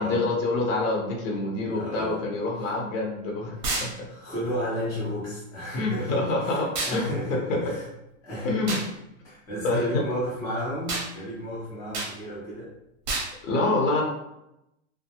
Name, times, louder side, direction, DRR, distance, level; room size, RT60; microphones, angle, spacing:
voice 1, 0.0-4.0 5.7-7.1 7.5-7.6 8.4-8.8 9.6-10.0 13.4-14.0, left 2 dB, 75° left, 0 dB, 0.9 m, -26 dB
voice 2, 1.7-2.2 2.6-2.7 3.7-3.8 4.1-7.9 8.2-8.9 9.2-12.7, equal, 10° left, -8 dB, 0.4 m, -33 dB
sound 1, 3.6-3.9 6.7-7.0 8.7-8.9 10.9-11.1 11.9-12.1 13.1-13.3, right 2 dB, 35° right, 0.6 m, -29 dB
2.3 x 2.0 x 2.7 m, 0.87 s
supercardioid pair, 150°, 40 cm